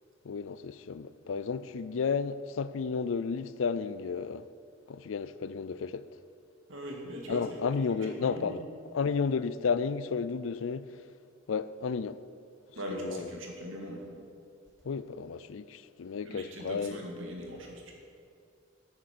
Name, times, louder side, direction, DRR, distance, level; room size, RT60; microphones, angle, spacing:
voice 1, 0.2-4.5 4.9-6.1 7.3-8.6 8.9-11.0 11.5-12.2 12.9-13.3 14.8-17.0, left 5 dB, 85° left, 0.4 m, -32 dB
voice 2, 6.7-7.5 8.1-8.6 12.7-14.1 16.2-17.9, equal, 80° right, 2.2 m, -40 dB
10.0 x 8.8 x 6.7 m
head